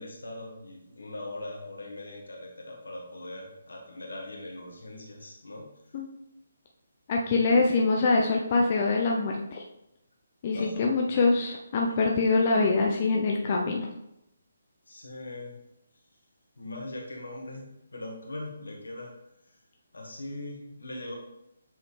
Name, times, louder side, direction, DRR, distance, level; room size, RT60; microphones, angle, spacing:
voice 1, 0.0-5.7 10.5-10.9 12.1-12.2 14.9-15.5 16.6-19.1 19.9-21.1, left 2 dB, 75° left, 0 dB, 1.7 m, -40 dB
voice 2, 7.1-9.6 10.4-13.9, left 3 dB, 40° left, -1 dB, 0.6 m, -24 dB
7.6 x 4.1 x 3.3 m, 0.84 s
figure-of-eight pair, 145°, 0 cm